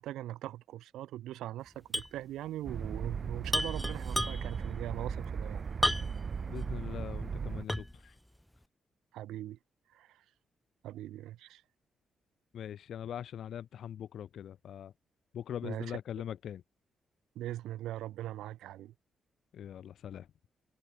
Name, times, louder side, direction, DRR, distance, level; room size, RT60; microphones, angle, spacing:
voice 1, 0.0-5.6 9.1-9.6 9.9-10.2 10.8-11.6 15.6-16.0 17.3-18.9, right 14 dB, 85° right, 4.5 m, -41 dB
sound 1, 1.9-2.2 2.5-2.6 3.5-4.6 5.8-6.3 6.8-6.9 7.7-8.1, equal, 5° left, 0.9 m, -32 dB
sound 2, 2.7-7.7, right 6 dB, 50° right, 0.6 m, -37 dB
voice 2, 6.5-8.1 12.5-14.9 15.3-16.6 19.5-20.3, left 9 dB, 70° left, 4.4 m, -42 dB
open air
supercardioid pair, 60°, 0 cm